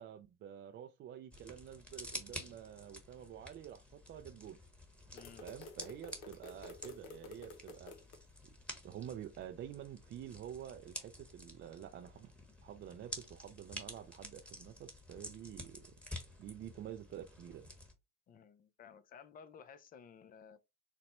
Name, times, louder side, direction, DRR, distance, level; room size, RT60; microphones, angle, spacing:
voice 1, 0.0-4.6 5.4-8.2 8.4-8.5 8.8-12.3 12.6-15.9 16.4-17.7, right 10 dB, 40° right, 0.5 m, -49 dB
sound 1, 1.3-17.9, equal, 5° left, 1.1 m, -50 dB
voice 2, 5.1-5.5 18.3-20.6, left 7 dB, 30° left, 0.5 m, -56 dB
sound 2, 5.2-8.2, left 3 dB, 80° left, 0.8 m, -51 dB
4.1 x 2.1 x 2.9 m
hypercardioid pair, 75°, 30 cm